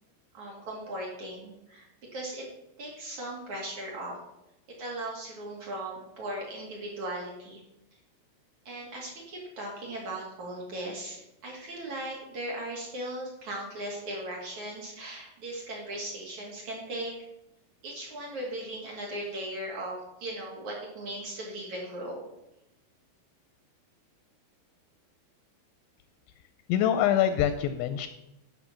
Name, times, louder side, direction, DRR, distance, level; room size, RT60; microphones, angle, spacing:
voice 1, 0.3-2.5 2.8-4.1 4.7-7.6 8.6-17.1 17.8-22.2, right 1 dB, 50° right, -3 dB, 2.6 m, -38 dB
voice 2, 26.7-28.1, left 10 dB, 85° left, 10 dB, 2.7 m, -25 dB
10.5 x 6.0 x 7.1 m, 0.89 s
omnidirectional pair, 5.5 m